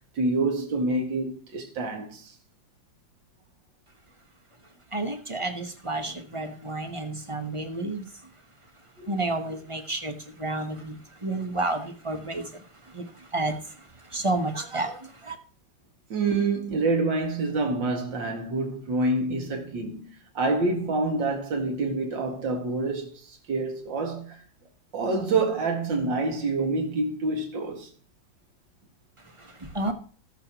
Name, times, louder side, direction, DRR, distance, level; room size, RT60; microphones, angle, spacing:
voice 1, 0.2-2.3 9.0-9.2 16.1-20.1 20.3-24.4 24.9-27.9, right 3 dB, 65° right, 2.7 m, -27 dB
voice 2, 4.9-8.0 9.1-11.0 11.2-12.5 12.9-13.1 13.3-13.6 14.1-15.4 29.7-29.9, right 2 dB, 25° right, 0.7 m, -30 dB
20.0 x 6.8 x 3.0 m
omnidirectional pair, 2.1 m